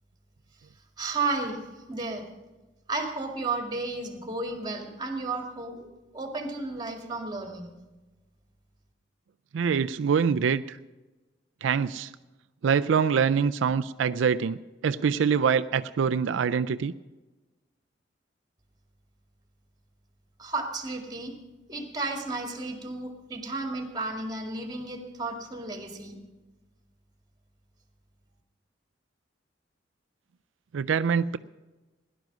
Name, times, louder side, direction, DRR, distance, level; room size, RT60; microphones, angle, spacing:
voice 1, 1.0-1.6 1.9-2.3 2.9-5.9 6.1-7.7 20.4-21.3 21.7-26.2, right 3 dB, 20° right, 4 dB, 2.0 m, -33 dB
voice 2, 9.5-10.8 11.6-12.1 12.6-16.9 30.7-31.4, right 6 dB, 85° right, 11 dB, 0.4 m, -25 dB
17.0 x 10.5 x 6.1 m, 1.2 s
head